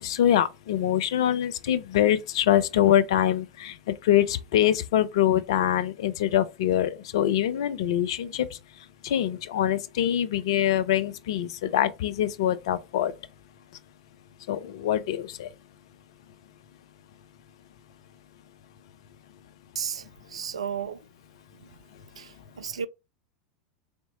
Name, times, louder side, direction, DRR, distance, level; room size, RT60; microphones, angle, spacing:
voice 1, 0.0-3.8 4.0-8.5 9.0-13.1 14.5-15.5, left 11 dB, 60° left, 0.5 m, -24 dB
voice 2, 19.8-21.0 22.2-22.9, right 7 dB, 75° right, 0.3 m, -34 dB
4.0 x 3.5 x 2.9 m
figure-of-eight pair, 85°, 3 cm